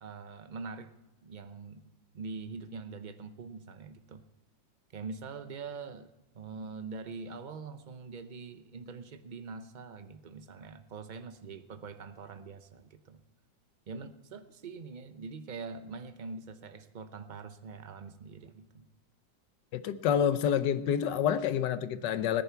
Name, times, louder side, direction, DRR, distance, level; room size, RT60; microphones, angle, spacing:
voice 1, 0.0-0.9 1.2-4.2 4.9-13.2 13.9-18.9, right 4 dB, 60° right, 9 dB, 0.4 m, -44 dB
voice 2, 19.7-22.4, left 9 dB, 70° left, 13 dB, 1.3 m, -28 dB
18.5 x 10.5 x 4.5 m, 0.99 s
omnidirectional pair, 2.0 m